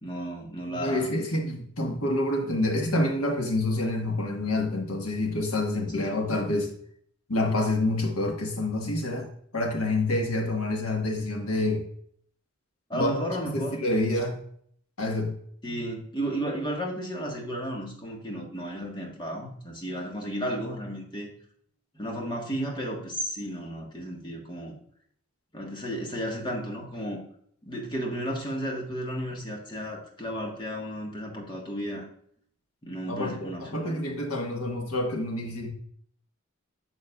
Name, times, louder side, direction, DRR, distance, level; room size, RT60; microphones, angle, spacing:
voice 1, 0.0-1.1 6.0-6.2 12.9-13.8 15.6-21.3 21.9-24.8 25.5-27.2 27.6-32.0 32.8-34.1, equal, 20° left, 0 dB, 1.5 m, -33 dB
voice 2, 0.7-6.7 7.3-11.8 12.9-13.1 13.5-14.4 15.0-15.3 33.1-35.7, left 1 dB, 80° left, 2 dB, 1.6 m, -27 dB
9.5 x 6.4 x 2.4 m, 0.62 s
head